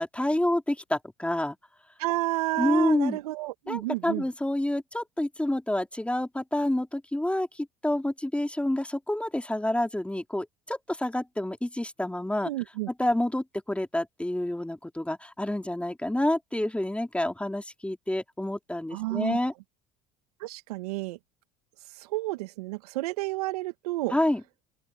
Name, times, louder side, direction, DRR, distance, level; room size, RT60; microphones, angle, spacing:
voice 1, 0.0-1.6 2.6-3.2 3.7-12.5 13.0-19.5 24.1-24.4, left 1 dB, 5° left, 3.5 m, -28 dB
voice 2, 2.0-4.3 12.4-12.9 18.9-19.4 20.4-21.2 22.0-24.2, right 19 dB, 80° right, 2.5 m, -31 dB
open air
hypercardioid pair, 65°, 19 cm